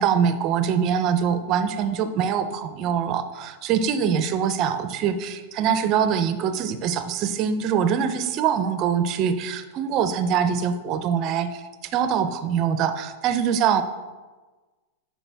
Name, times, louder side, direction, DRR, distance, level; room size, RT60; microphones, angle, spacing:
voice 1, 0.0-13.8, right 7 dB, 35° right, 10 dB, 0.5 m, -23 dB
8.4 x 4.4 x 3.4 m, 1.3 s
supercardioid pair, 160°, 0 cm